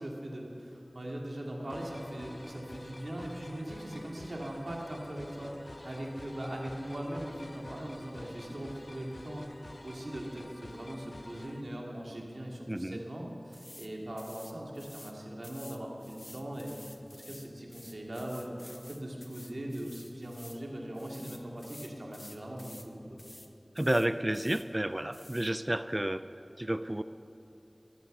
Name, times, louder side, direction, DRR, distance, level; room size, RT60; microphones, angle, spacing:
voice 1, 0.0-9.5 9.8-23.2, right 1 dB, 75° right, -1 dB, 2.5 m, -40 dB
sound 1, 1.7-11.6, left 1 dB, 65° left, 0.8 m, -49 dB
voice 2, 12.7-13.0 23.8-26.2 26.6-27.0, right 1 dB, 30° right, 12 dB, 0.4 m, -31 dB
sound 2, 13.5-13.9 14.2-15.1 15.4-20.6 20.9-22.9 23.2-23.5 23.8-24.7 25.1-25.5, left 1 dB, 35° left, 1.1 m, -51 dB
14.0 x 12.5 x 6.7 m, 2.9 s
wide cardioid pair, 40°, 0 cm